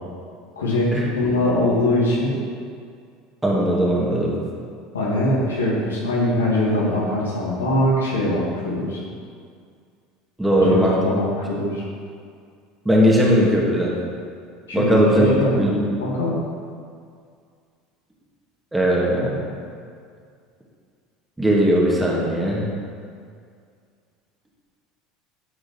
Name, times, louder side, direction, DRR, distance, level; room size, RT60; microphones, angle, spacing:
voice 1, 0.6-2.3 4.9-9.0 10.6-11.8 14.7-15.6 16.0-16.4, left 1 dB, 75° left, -6 dB, 2.6 m, -22 dB
voice 2, 3.4-4.3 10.4-11.0 12.8-13.9 14.7-15.7 18.7-19.4 21.4-22.6, equal, 10° right, -4 dB, 2.5 m, -18 dB
10.5 x 7.7 x 4.5 m, 2.2 s
figure-of-eight pair, 70°, 0 cm